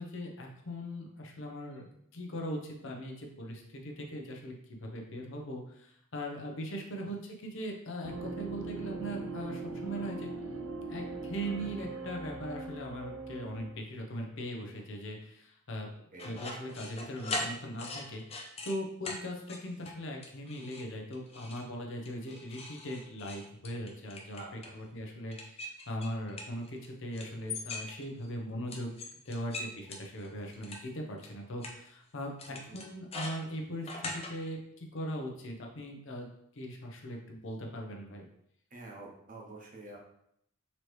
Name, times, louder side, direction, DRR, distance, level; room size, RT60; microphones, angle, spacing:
voice 1, 0.0-10.3 10.9-15.9 16.2-29.0 29.2-38.2, equal, 65° left, 1 dB, 0.7 m, -40 dB
sound 1, 8.0-13.8, right 3 dB, 80° right, 0.5 m, -40 dB
sound 2, 16.2-18.8 19.0-19.2 19.5-20.0 20.2-20.9 21.1-21.6 22.0-24.8 25.3-26.9 27.1-28.3 28.7-30.8 31.2-31.3 31.6-31.7 32.4-34.3, left 2 dB, 30° left, 0.5 m, -40 dB
voice 2, 24.4-24.7 32.5-32.9 38.7-40.0, right 2 dB, 40° right, -2 dB, 1.0 m, -48 dB
4.0 x 3.1 x 3.2 m, 0.72 s
head